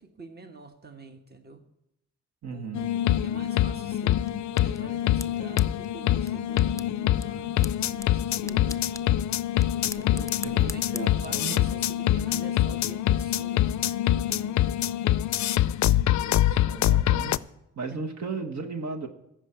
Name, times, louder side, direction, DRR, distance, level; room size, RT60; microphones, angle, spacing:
voice 1, 0.0-1.6 2.5-2.7 3.1-4.2 4.6-9.5 9.9-13.9 14.3-14.7 15.9-16.7 17.9-18.0, right 4 dB, 30° right, 7 dB, 1.3 m, -46 dB
voice 2, 2.4-2.9 10.4-11.6 16.7-17.4 17.8-19.1, right 4 dB, 65° right, 4 dB, 1.4 m, -35 dB
sound 1, 2.7-17.4, left 12 dB, 65° left, 0.4 m, -25 dB
sound 2, 3.9-11.6, left 3 dB, 10° left, 0.4 m, -44 dB
14.5 x 5.1 x 8.9 m, 0.84 s
cardioid pair, 60°, 31 cm